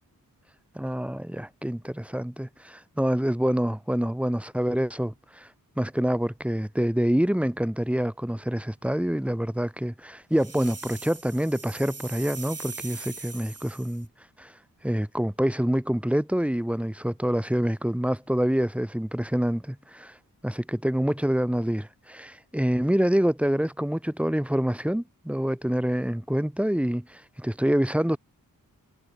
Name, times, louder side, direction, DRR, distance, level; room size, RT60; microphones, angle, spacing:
voice 1, 0.8-5.5 5.8-14.1 14.4-14.5 14.8-20.2 20.4-28.2, equal, 5° right, 3.8 m, -26 dB
sound 1, 10.4-14.0, right 4 dB, 45° right, 7.3 m, -41 dB
wide cardioid pair, 90°, 35 cm